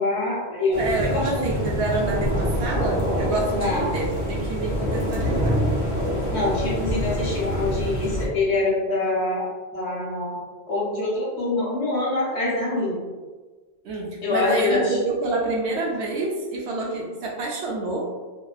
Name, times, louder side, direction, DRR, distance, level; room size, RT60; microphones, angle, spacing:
voice 1, 0.0-1.5 3.5-4.0 6.3-9.5 9.7-10.4 10.7-13.0 14.2-15.0, left 2 dB, 80° left, -5 dB, 1.1 m, -25 dB
sound 1, 0.7-8.3, equal, 60° left, 0.8 m, -25 dB
voice 2, 0.8-5.6 13.8-18.0, right 2 dB, 75° right, -2 dB, 0.9 m, -27 dB
2.7 x 2.2 x 2.3 m, 1.4 s
omnidirectional pair, 1.1 m